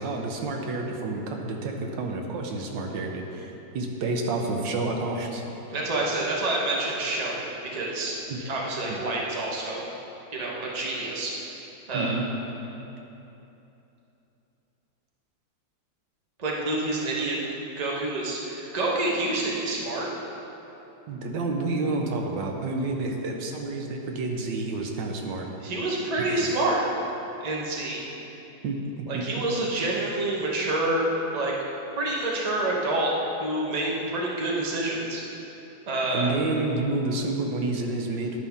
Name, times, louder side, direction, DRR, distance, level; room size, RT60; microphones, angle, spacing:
voice 1, 0.0-5.4 8.3-8.4 8.9-9.0 11.9-12.3 21.1-25.5 26.2-26.5 28.6-28.8 29.1-29.2 36.1-38.4, right 3 dB, 85° right, 2 dB, 1.4 m, -29 dB
voice 2, 5.7-9.9 10.3-11.4 11.9-12.2 16.4-17.4 17.8-20.1 25.6-26.8 27.4-28.1 29.1-31.5 32.0-33.1 33.4-35.2 35.9-36.3, right 2 dB, 30° right, -3 dB, 0.8 m, -28 dB
11.0 x 5.5 x 3.5 m, 3.0 s
omnidirectional pair, 2.0 m